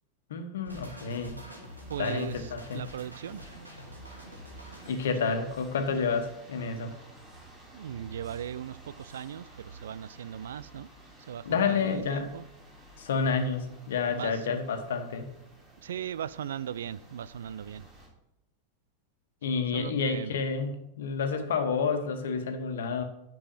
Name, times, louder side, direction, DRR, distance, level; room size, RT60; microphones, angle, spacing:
voice 1, 0.3-1.4 2.0-2.8 4.9-6.9 11.4-12.3 13.0-15.3 19.4-23.0, left 5 dB, 60° left, 1.4 m, -29 dB
sound 1, 0.6-4.9, right 1 dB, 85° right, 2.5 m, -46 dB
sound 2, 1.6-18.1, right 2 dB, 20° right, 3.9 m, -52 dB
voice 2, 1.9-3.5 5.2-5.3 7.7-10.9 11.3-12.5 14.1-14.6 15.8-17.9 19.7-20.3, right 9 dB, 60° right, 0.4 m, -38 dB
10.0 x 7.0 x 5.8 m
figure-of-eight pair, 90°, 0 cm